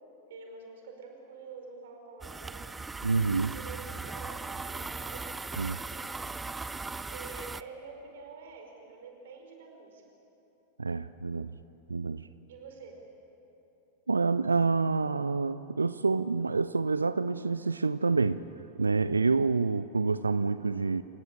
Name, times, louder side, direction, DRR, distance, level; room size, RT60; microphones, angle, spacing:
voice 1, 0.3-2.8 3.5-6.1 7.1-10.0 12.5-13.0, right 4 dB, 60° right, 3 dB, 5.0 m, -47 dB
sound 1, 2.2-7.6, right 4 dB, 10° right, 0.5 m, -39 dB
voice 2, 3.0-3.5 5.6-5.8 10.8-11.6 11.9-12.3 14.1-18.4 18.8-21.0, right 4 dB, 80° right, 15 dB, 0.5 m, -27 dB
28.5 x 17.5 x 8.7 m, 2.9 s
figure-of-eight pair, 90°, 0 cm